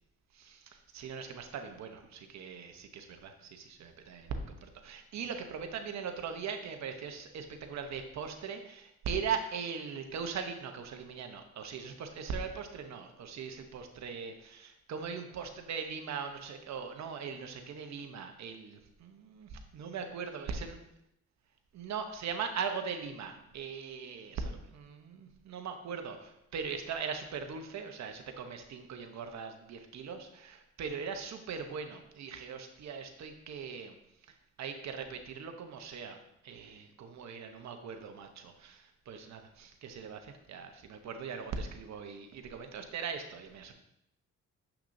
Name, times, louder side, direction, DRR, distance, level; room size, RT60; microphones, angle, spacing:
voice 1, 0.3-20.7 21.7-33.9 34.6-36.2 36.4-43.7, right 6 dB, 65° right, 6 dB, 0.9 m, -40 dB
7.2 x 5.9 x 2.7 m, 0.81 s
cardioid pair, 90°, 30 cm